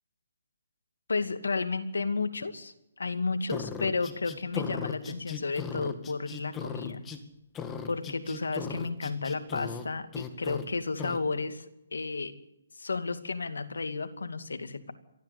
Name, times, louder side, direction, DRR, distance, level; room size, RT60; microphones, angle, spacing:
voice 1, 1.1-7.0 7.8-11.7 11.9-12.3 12.7-14.9, left 4 dB, 85° left, 9 dB, 2.3 m, -32 dB
sound 1, 3.5-7.2 7.5-9.9 10.1-10.7 11.0-11.2, left 6 dB, 15° left, 2.0 m, -38 dB
23.0 x 15.0 x 8.4 m, 0.86 s
hypercardioid pair, 150°, 0 cm